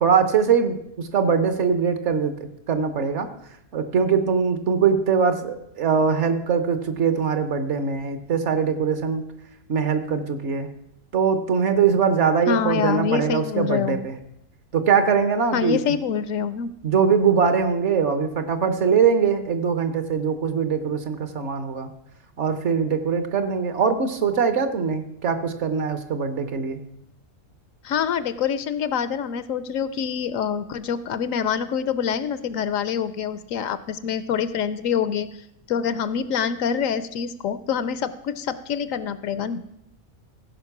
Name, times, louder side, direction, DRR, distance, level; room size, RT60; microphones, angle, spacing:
voice 1, 0.0-2.3 2.7-3.3 3.7-9.2 9.7-10.7 11.1-14.1 14.7-15.8 16.8-21.9 22.4-26.8, right 6 dB, 55° right, 9 dB, 1.2 m, -22 dB
voice 2, 12.5-14.0 15.5-16.7 27.8-35.3 35.7-39.6, left 7 dB, 70° left, 14 dB, 1.0 m, -26 dB
15.5 x 5.2 x 5.9 m, 0.78 s
omnidirectional pair, 1.5 m